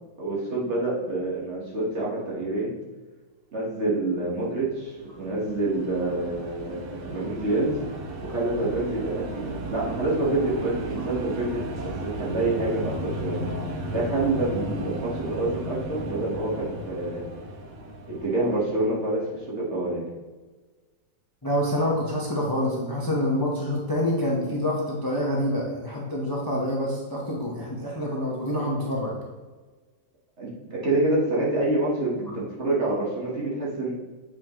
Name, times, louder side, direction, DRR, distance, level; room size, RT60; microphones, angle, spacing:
voice 1, 0.2-2.7 3.5-7.8 8.2-13.4 13.9-17.3 18.1-20.0 30.4-33.9, right 2 dB, 40° right, -5 dB, 1.6 m, -27 dB
sound 1, 4.7-19.2, right 1 dB, 70° right, 1.5 m, -35 dB
voice 2, 21.4-29.1, left 1 dB, 15° left, -4 dB, 0.8 m, -27 dB
8.2 x 4.9 x 3.0 m, 1.3 s
omnidirectional pair, 2.0 m